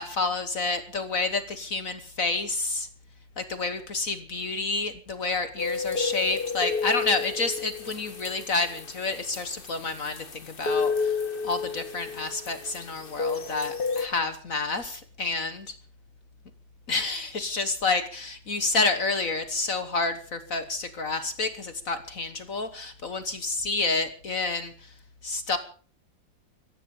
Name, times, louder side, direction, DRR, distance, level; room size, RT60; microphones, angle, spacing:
voice 1, 0.0-2.9 3.4-15.7 16.9-24.9 25.2-25.6, left 3 dB, 50° left, 10 dB, 1.5 m, -29 dB
sound 1, 5.6-14.1, left 5 dB, 30° left, 1.3 m, -31 dB
15.5 x 15.5 x 5.5 m, 0.42 s
omnidirectional pair, 2.1 m